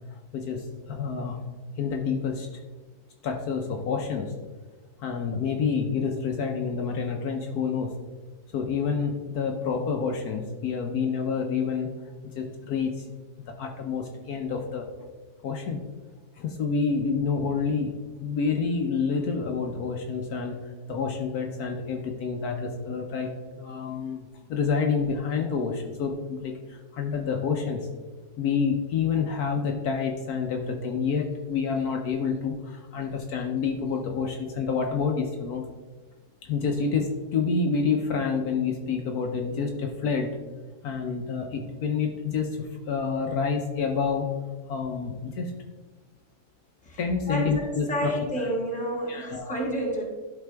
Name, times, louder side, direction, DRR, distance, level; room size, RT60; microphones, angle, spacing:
voice 1, 0.3-1.4 1.8-2.5 3.2-4.4 5.0-7.9 8.5-11.9 12.3-13.0 13.4-14.9 15.4-15.8 16.4-17.9 18.2-20.6 20.9-24.2 24.5-27.9 28.4-35.7 36.4-40.3 40.8-44.3 44.7-45.5 47.0-48.1 48.4-48.5 49.1-49.6, left 5 dB, 70° left, 3 dB, 1.2 m, -28 dB
voice 2, 47.3-50.0, equal, 5° left, -2 dB, 1.3 m, -30 dB
11.5 x 4.2 x 3.4 m, 1.3 s
omnidirectional pair, 1.8 m